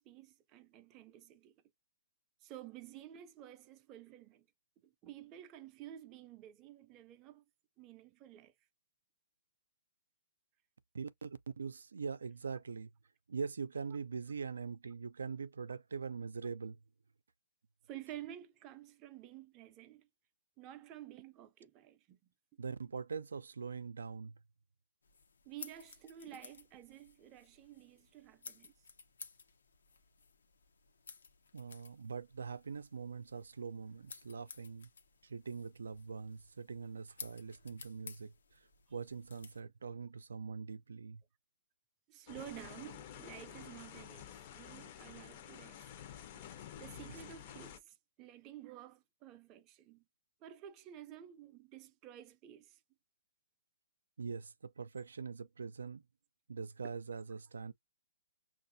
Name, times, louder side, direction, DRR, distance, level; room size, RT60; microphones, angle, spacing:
voice 1, 0.0-1.5 2.4-4.5 4.8-7.4 7.8-8.5 17.9-20.1 20.6-22.2 25.5-28.7 38.9-39.0 42.1-45.9 46.8-50.0 50.4-52.8, right 11 dB, 25° right, 0.4 m, -52 dB
voice 2, 10.9-12.9 13.3-16.8 22.6-24.4 31.5-34.9 35.2-41.2 47.1-47.2 54.2-56.0 56.5-57.7, right 5 dB, 90° right, 0.4 m, -43 dB
sound 1, 25.0-39.6, left 5 dB, 85° left, 0.7 m, -56 dB
sound 2, 42.3-47.8, left 9 dB, 40° left, 0.5 m, -50 dB
5.5 x 2.4 x 2.6 m
hypercardioid pair, 155°, 0 cm